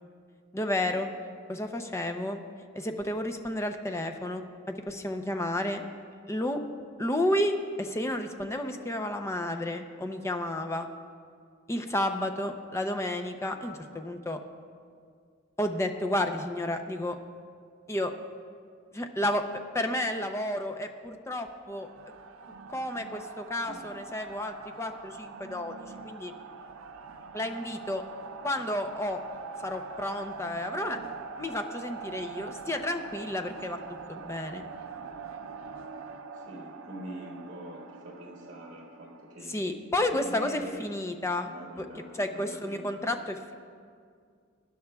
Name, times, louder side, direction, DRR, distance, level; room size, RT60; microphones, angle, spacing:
voice 1, 0.5-1.1 1.5-2.4 2.7-5.8 6.3-6.6 7.0-10.9 11.7-14.4 15.6-17.2 17.9-18.1 18.9-19.5 19.7-21.9 22.7-26.3 27.3-28.0 28.4-29.2 29.6-31.0 31.4-33.8 34.1-34.6 39.5-41.5 41.8-41.9 42.1-43.5, left 1 dB, 15° left, 6 dB, 0.6 m, -31 dB
sound 1, 21.7-39.4, right 4 dB, 85° right, 0.5 m, -43 dB
voice 2, 23.6-24.0 36.3-39.8 40.0-40.9 41.5-43.1, right 1 dB, 45° right, -2 dB, 3.6 m, -44 dB
22.5 x 10.5 x 2.3 m, 2.2 s
head